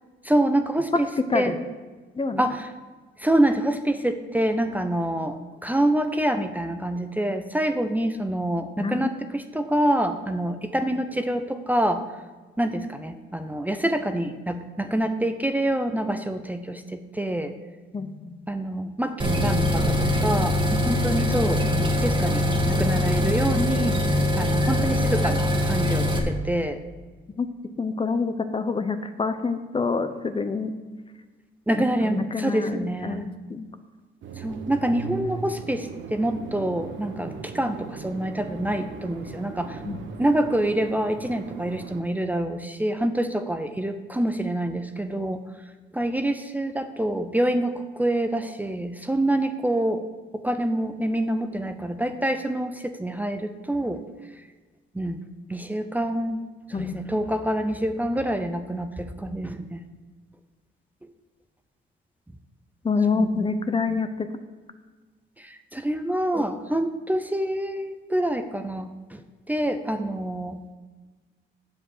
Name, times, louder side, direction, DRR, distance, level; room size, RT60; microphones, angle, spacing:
voice 1, 0.2-1.5 2.4-2.7 3.2-12.0 12.6-17.5 18.5-24.0 24.4-26.8 31.7-33.3 34.4-39.8 40.2-45.4 45.9-50.0 50.3-54.0 54.9-55.2 55.5-56.4 56.7-59.8 63.1-63.6 65.4-69.2 69.5-70.6, right 1 dB, 10° right, 7 dB, 0.7 m, -26 dB
voice 2, 1.3-1.6 2.2-2.5 8.8-9.1 17.9-18.3 27.4-27.5 27.8-30.7 32.0-33.7 39.8-40.0 56.7-57.0 62.8-64.3, left 4 dB, 25° left, 9 dB, 0.8 m, -27 dB
sound 1, 19.2-26.2, left 1 dB, 25° right, 1.7 m, -23 dB
sound 2, 34.2-42.0, right 5 dB, 70° right, 1.0 m, -38 dB
7.6 x 7.4 x 6.6 m, 1.3 s
cardioid pair, 90°, 20 cm